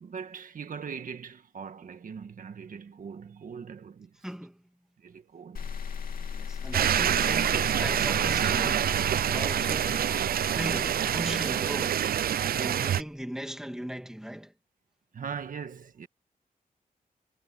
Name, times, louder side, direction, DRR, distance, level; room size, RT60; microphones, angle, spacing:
voice 1, 0.0-4.1 5.0-5.8 12.1-12.5 15.1-16.1, right 6 dB, 65° right, 1.6 m, -41 dB
voice 2, 4.2-4.6 6.3-12.2 12.6-14.5, equal, 5° right, 1.7 m, -38 dB
sound 1, 5.5-12.7, left 6 dB, 80° left, 2.9 m, -38 dB
sound 2, 6.7-13.0, right 10 dB, 90° right, 0.4 m, -26 dB
wide cardioid pair, 175°, 15 cm